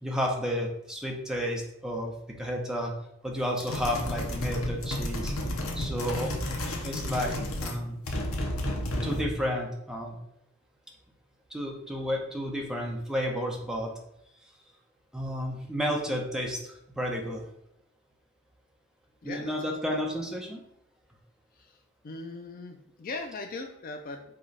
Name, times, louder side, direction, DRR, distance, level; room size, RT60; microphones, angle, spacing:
voice 1, 0.0-2.1 2.4-2.9 3.2-5.3 5.7-6.3 6.8-7.3 7.6-8.0 9.0-10.2 11.5-13.9 15.1-17.4 19.2-20.6, equal, 5° right, -1 dB, 0.7 m, -31 dB
sound 1, 3.6-9.4, left 1 dB, 80° left, 0.8 m, -32 dB
voice 2, 19.2-20.0 21.5-24.2, left 3 dB, 45° left, 5 dB, 0.4 m, -40 dB
4.9 x 2.3 x 4.0 m, 0.76 s
head